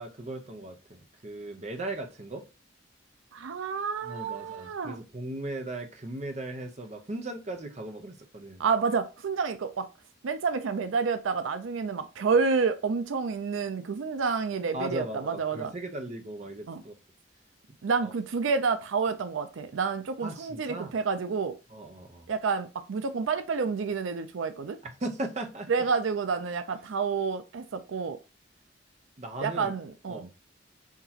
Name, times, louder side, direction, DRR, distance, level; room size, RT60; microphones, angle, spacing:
voice 1, 0.0-2.4 4.0-8.6 14.7-16.9 18.0-18.1 20.2-20.9 21.7-22.3 24.8-25.7 29.2-29.7 30.1-30.3, right 2 dB, 35° right, 0.8 m, -37 dB
voice 2, 3.3-5.0 8.6-9.9 10.2-15.7 16.7-16.8 17.8-21.5 22.3-24.8 25.7-28.2 29.4-30.3, right 5 dB, 85° right, 0.5 m, -29 dB
5.8 x 2.9 x 2.8 m
head